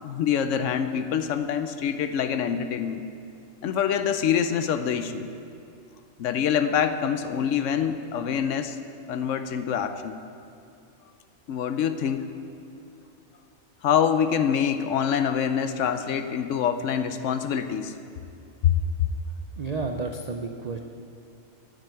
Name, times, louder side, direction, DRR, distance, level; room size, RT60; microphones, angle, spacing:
voice 1, 0.0-3.0 3.6-5.2 6.2-8.8 9.1-10.2 11.5-12.3 13.8-17.9 18.6-18.8, left 8 dB, 65° left, 9 dB, 0.9 m, -25 dB
voice 2, 19.6-20.8, right 4 dB, 85° right, 4 dB, 0.3 m, -31 dB
9.1 x 7.8 x 9.3 m, 2.5 s
omnidirectional pair, 1.5 m